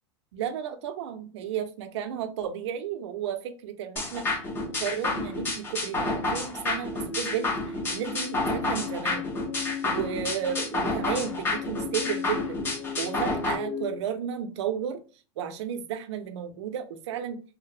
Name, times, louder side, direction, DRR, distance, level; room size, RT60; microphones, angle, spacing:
voice 1, 0.3-4.3 4.8-9.3 9.8-12.6 13.0-15.0 15.4-17.4, right 8 dB, 70° right, 8 dB, 0.5 m, -33 dB
sound 1, 4.0-13.6, left 2 dB, 15° left, 0.4 m, -30 dB
sound 2, 6.7-14.0, left 7 dB, 85° left, 0.4 m, -37 dB
2.7 x 2.0 x 2.4 m, 0.36 s
supercardioid pair, 155°, 15 cm